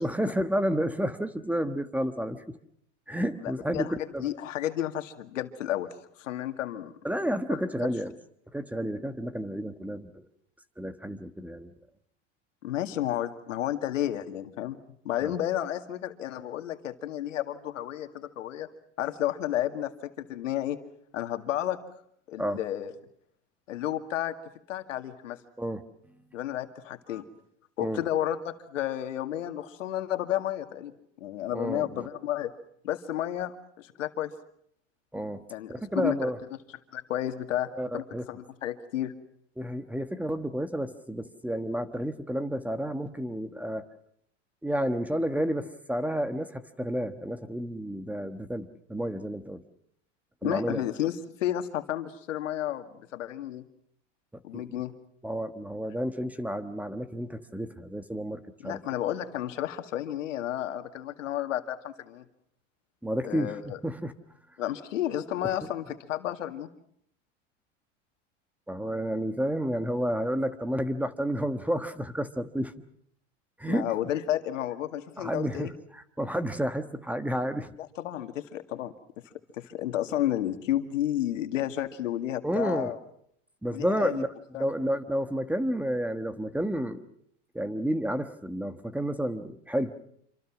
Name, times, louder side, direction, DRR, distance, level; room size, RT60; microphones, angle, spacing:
voice 1, 0.0-2.6 3.1-4.3 7.0-8.1 8.5-10.2 10.8-11.7 15.2-15.4 22.4-22.6 25.6-25.8 27.8-28.0 31.5-32.1 35.1-35.4 35.7-36.4 37.8-38.2 39.6-43.8 44.6-49.6 50.4-50.9 54.5-54.6 55.2-58.8 63.0-64.1 65.4-65.5 68.7-72.7 73.6-73.9 75.2-77.7 82.4-82.9 83.6-84.3 84.6-87.0 87.5-89.9, equal, 5° right, 10 dB, 1.3 m, -31 dB
voice 2, 3.4-5.9 6.2-6.9 7.5-7.6 12.6-14.8 15.0-18.7 19.0-20.8 21.1-21.8 22.3-22.9 23.7-24.3 24.7-25.4 26.3-27.2 27.8-30.9 31.2-32.5 32.8-34.3 35.5-36.3 36.9-39.1 50.4-52.9 53.1-53.6 54.4-54.9 58.6-62.2 63.2-63.8 64.6-66.7 73.7-75.7 78.0-78.9 79.6-83.0 83.7-84.2 84.5-84.7, left 12 dB, 90° left, 7 dB, 2.2 m, -31 dB
27.0 x 25.0 x 6.1 m, 0.70 s
supercardioid pair, 115°, 37 cm